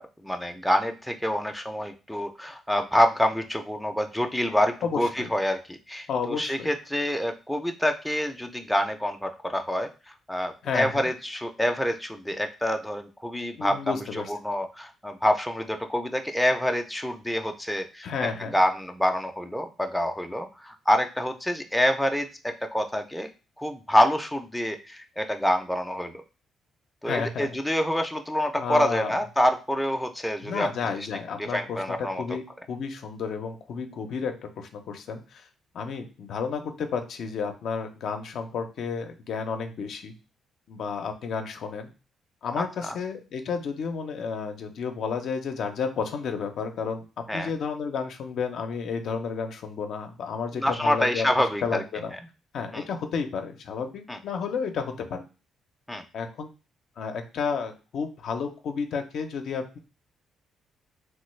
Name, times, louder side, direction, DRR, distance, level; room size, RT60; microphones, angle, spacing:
voice 1, 0.2-9.9 10.3-18.1 18.5-23.3 23.6-26.1 27.0-30.7 31.5-32.2 42.8-42.9 47.3-47.5 50.6-51.8 52.7-52.8 54.1-54.2 55.9-56.0, equal, 5° left, 5 dB, 0.4 m, -26 dB
voice 2, 4.8-5.3 6.1-6.7 10.6-11.1 13.6-14.3 18.0-18.5 27.1-27.6 28.6-29.2 30.4-35.5 35.7-40.1 40.7-41.9 42.4-47.0 47.3-52.1 52.5-55.2 56.1-56.5 57.0-59.8, left 5 dB, 70° left, 6 dB, 0.5 m, -32 dB
3.2 x 2.2 x 3.1 m, 0.32 s
cardioid pair, 90°, 0 cm